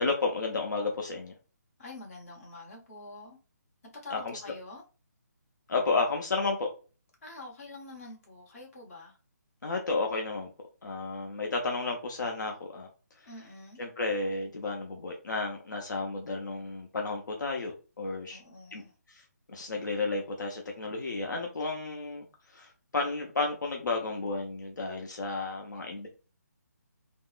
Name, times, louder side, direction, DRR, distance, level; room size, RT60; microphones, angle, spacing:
voice 1, 0.0-1.3 4.1-4.4 5.7-6.7 9.6-10.5 10.8-12.9 13.2-13.3 13.8-18.4 18.7-19.2 19.5-26.1, left 3 dB, 80° left, 0.7 m, -32 dB
voice 2, 1.8-3.4 4.0-4.8 7.2-9.2 13.2-13.8 18.3-18.9, left 3 dB, 50° left, 1.2 m, -46 dB
3.5 x 2.0 x 2.4 m
hypercardioid pair, 155°, 10 cm